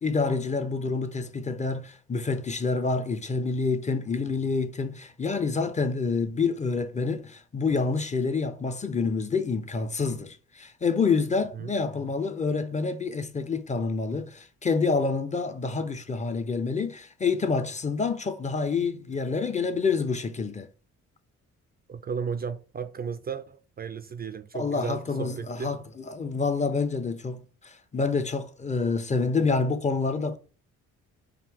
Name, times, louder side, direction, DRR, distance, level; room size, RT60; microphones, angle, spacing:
voice 1, 0.0-20.7 24.5-30.4, left 4 dB, 25° left, 0.6 m, -27 dB
voice 2, 21.9-25.8, right 6 dB, 30° right, 0.4 m, -34 dB
5.0 x 2.7 x 3.4 m
cardioid pair, 90°, 30 cm